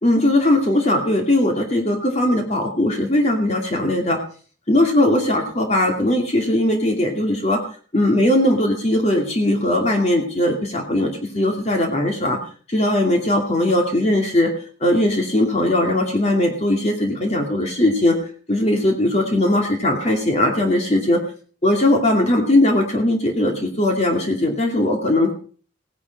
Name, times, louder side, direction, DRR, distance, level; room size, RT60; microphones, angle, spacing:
voice 1, 0.0-4.2 4.7-7.6 7.9-12.4 12.7-14.5 14.8-18.1 18.5-21.2 21.6-25.3, left 1 dB, 35° left, 2 dB, 2.5 m, -19 dB
17.0 x 11.0 x 5.3 m, 0.42 s
head